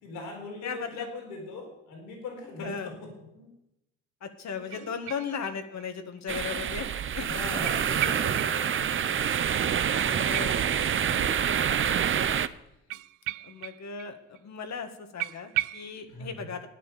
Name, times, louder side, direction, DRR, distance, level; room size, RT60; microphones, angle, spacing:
voice 1, 0.0-2.7 3.3-3.5 4.7-4.8 6.6-6.7 7.2-8.7 9.4-10.6 11.1-11.9 16.1-16.5, left 3 dB, 85° left, 0 dB, 4.2 m, -41 dB
voice 2, 0.6-1.1 2.6-2.9 4.2-7.5 9.9-10.7 12.9-13.0 13.4-14.2 14.4-16.7, left 6 dB, 55° left, 7 dB, 1.8 m, -37 dB
sound 1, 4.7-5.9 6.2-6.3 7.6-8.8 9.1-9.2 9.5-9.6 10.0-11.5 12.9-14.1 14.4-14.5 14.7-14.8 15.2-15.9, right 17 dB, 75° right, 0.5 m, -36 dB
sound 2, 6.3-12.5, right 8 dB, 40° right, 0.7 m, -27 dB
11.0 x 9.6 x 6.9 m, 0.86 s
supercardioid pair, 65°, 33 cm